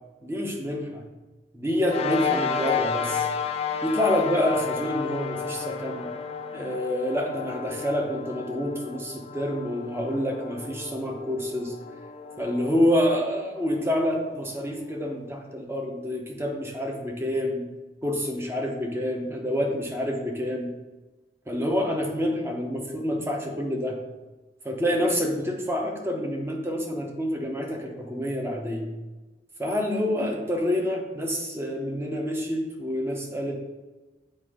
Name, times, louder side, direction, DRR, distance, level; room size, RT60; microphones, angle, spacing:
voice 1, 0.2-1.0 1.5-3.3 3.8-6.1 6.5-11.7 12.4-17.6 18.0-20.7 21.5-24.0 24.6-28.9 29.6-33.6, equal, 15° right, 0 dB, 0.8 m, -27 dB
sound 1, 1.8-14.6, left 6 dB, 35° left, 0.4 m, -32 dB
7.5 x 2.6 x 4.9 m, 1.2 s
head